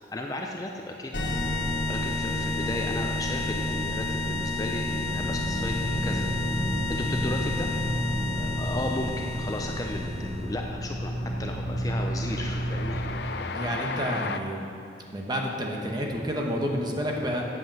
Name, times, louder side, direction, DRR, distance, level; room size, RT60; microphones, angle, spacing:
voice 1, 0.0-1.4 1.7-6.3 6.9-7.7 8.3-13.0, left 1 dB, 20° left, 1 dB, 0.5 m, -35 dB
sound 1, 1.1-10.5, left 2 dB, 85° left, 1.6 m, -30 dB
sound 2, 5.1-13.2, equal, 70° right, 1.5 m, -32 dB
Train, 9.2-9.3 9.5-14.4, left 4 dB, 65° left, 0.5 m, -37 dB
voice 2, 13.5-14.7 15.1-17.5, equal, 25° right, 0 dB, 1.1 m, -29 dB
8.2 x 7.6 x 7.5 m, 2.6 s
head